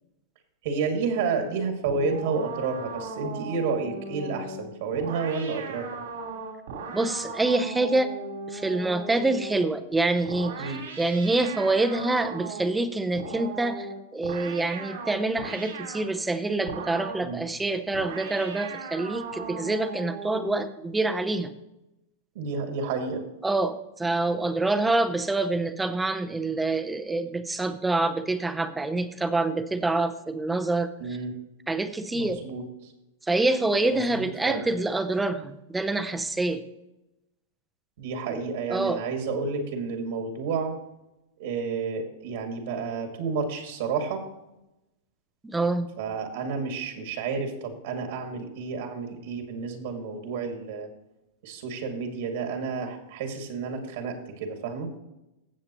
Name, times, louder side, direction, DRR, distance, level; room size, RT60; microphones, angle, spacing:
voice 1, 0.6-6.0 10.6-10.8 17.2-17.4 22.3-23.2 31.0-31.3 32.1-32.9 33.9-34.7 38.0-40.8 41.4-44.2 46.0-50.9 51.4-54.9, right 5 dB, 65° right, 3 dB, 2.2 m, -30 dB
sound 1, 1.8-9.7 10.2-12.8 13.1-16.1 16.7-17.3 17.9-20.8, right 3 dB, 80° right, 3.8 m, -38 dB
voice 2, 6.9-8.1 8.5-13.9 14.1-21.5 23.4-30.9 31.7-32.4 33.3-36.6 38.7-39.0 45.4-45.9, right 2 dB, 5° right, 10 dB, 0.7 m, -26 dB
16.0 x 7.4 x 3.0 m, 0.91 s
supercardioid pair, 150°, 0 cm